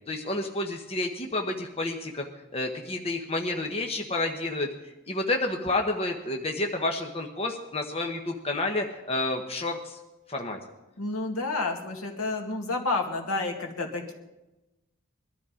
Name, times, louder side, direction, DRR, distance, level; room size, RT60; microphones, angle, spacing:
voice 1, 0.1-10.0 10.3-10.6, left 2 dB, 25° left, 2 dB, 1.2 m, -30 dB
voice 2, 11.0-14.1, left 3 dB, 75° left, 2 dB, 2.2 m, -30 dB
21.0 x 12.5 x 5.1 m, 1.0 s
head